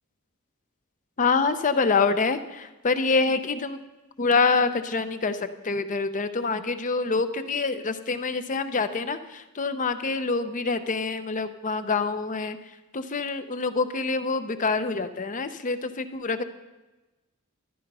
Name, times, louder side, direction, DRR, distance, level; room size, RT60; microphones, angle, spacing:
voice 1, 1.2-3.8 4.2-12.6 12.9-16.4, left 4 dB, 35° left, 10 dB, 0.7 m, -26 dB
12.5 x 10.5 x 5.5 m, 1.1 s
head